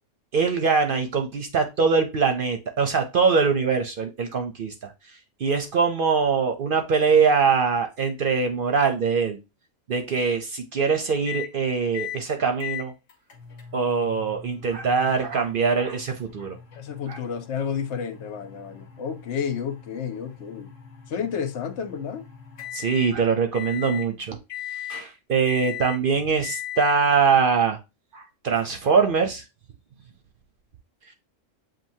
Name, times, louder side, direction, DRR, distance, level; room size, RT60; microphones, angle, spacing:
voice 1, 0.3-4.9 5.4-9.4 9.9-12.9 13.7-16.6 17.1-17.2 22.7-24.4 24.9-27.8 28.1-29.4, right 5 dB, 55° right, 0.7 m, -23 dB
sound 1, 11.2-11.5 11.9-12.2 12.6-23.1 23.5-24.1 24.5-25.1 25.5-26.0 26.4-27.0, left 11 dB, 85° left, 1.3 m, -39 dB
voice 2, 16.7-20.7 21.1-22.2, left 7 dB, 70° left, 0.9 m, -31 dB
7.4 x 2.6 x 2.7 m
omnidirectional pair, 1.3 m